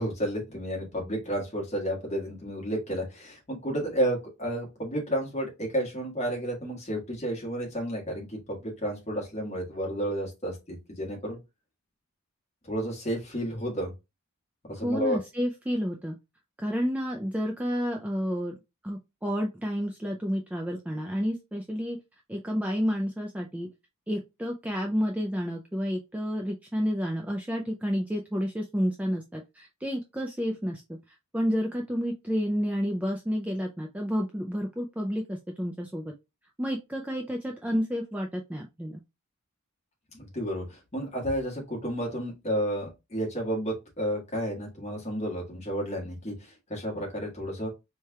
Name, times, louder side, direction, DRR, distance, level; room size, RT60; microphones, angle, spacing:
voice 1, 0.0-11.4 12.6-13.9 14.7-15.2 40.1-47.7, equal, 30° left, -1 dB, 1.5 m, -31 dB
voice 2, 14.8-16.2 16.6-18.6 18.8-22.0 22.3-23.7 24.1-31.0 31.3-36.1 36.6-39.0, equal, 5° right, 2 dB, 0.3 m, -30 dB
4.2 x 3.3 x 2.2 m, 0.24 s
head